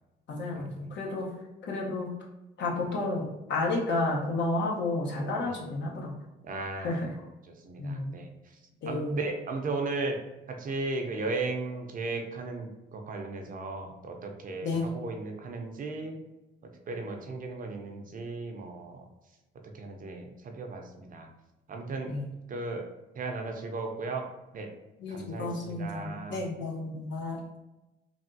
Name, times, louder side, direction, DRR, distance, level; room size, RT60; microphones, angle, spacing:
voice 1, 0.3-1.3 1.7-2.1 2.6-6.1 6.8-7.1 7.8-8.1 8.8-9.2 14.6-14.9 22.1-22.3 25.0-27.4, left 2 dB, 65° left, -2 dB, 0.9 m, -31 dB
voice 2, 6.4-7.1 7.6-8.3 8.9-10.2 10.5-16.1 16.9-19.0 19.7-20.3 20.6-21.3 21.7-22.1 22.5-22.9 23.2-24.3 24.5-24.7 25.1-26.4, right 3 dB, 45° right, 3 dB, 0.5 m, -35 dB
3.4 x 2.3 x 2.6 m, 1.0 s
cardioid pair, 90°, 20 cm